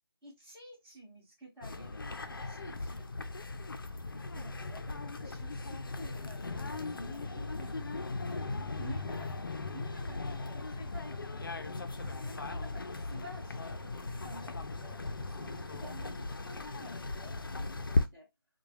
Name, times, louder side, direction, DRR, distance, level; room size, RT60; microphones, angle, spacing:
voice 1, 0.2-3.1 4.1-7.9 8.2-9.3 9.7-11.7 12.0-18.3, equal, ahead, 0.5 m, -51 dB
sound 1, 1.6-18.1, left 3 dB, 60° left, 0.5 m, -38 dB
3.4 x 2.3 x 3.1 m
figure-of-eight pair, 180°, 13 cm